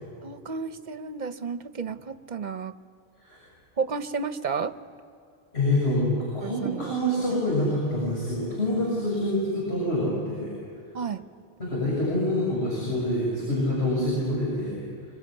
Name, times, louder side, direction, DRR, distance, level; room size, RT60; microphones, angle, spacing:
voice 1, 0.2-2.7 3.8-4.8 6.4-6.9 8.9-9.0 10.9-11.2, right 5 dB, 45° right, 12 dB, 0.9 m, -32 dB
voice 2, 5.5-10.5 11.6-14.8, left 1 dB, 80° left, -5 dB, 7.1 m, -26 dB
26.0 x 22.5 x 10.0 m, 2.4 s
omnidirectional pair, 1.1 m